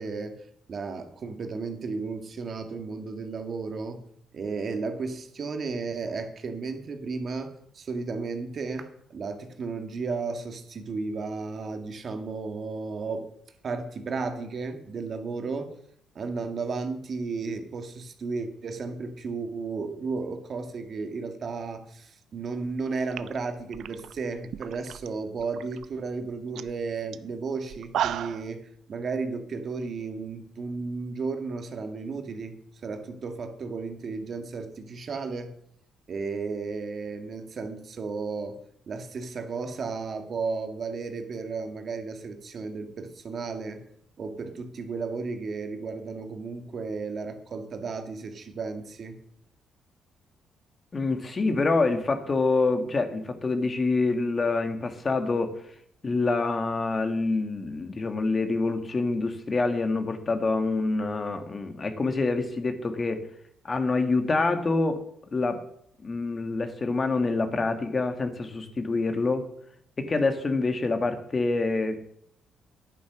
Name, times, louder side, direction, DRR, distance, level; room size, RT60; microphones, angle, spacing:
voice 1, 0.0-4.0 4.3-13.3 13.6-15.8 16.2-32.6 32.8-35.5 36.1-38.6 38.9-43.8 44.2-49.2, right 4 dB, 50° right, 7 dB, 1.8 m, -34 dB
sound 1, 22.7-22.8 23.1-25.1 25.4-25.9 26.2-26.3 26.5-26.7 27.1-27.2 27.7-28.5, right 10 dB, 75° right, 0.6 m, -33 dB
voice 2, 50.9-55.5 56.0-63.2 63.6-65.6 66.0-69.5 70.0-72.0, left 3 dB, 35° left, 8 dB, 1.7 m, -26 dB
10.5 x 9.3 x 6.2 m, 0.70 s
cardioid pair, 90°, 0 cm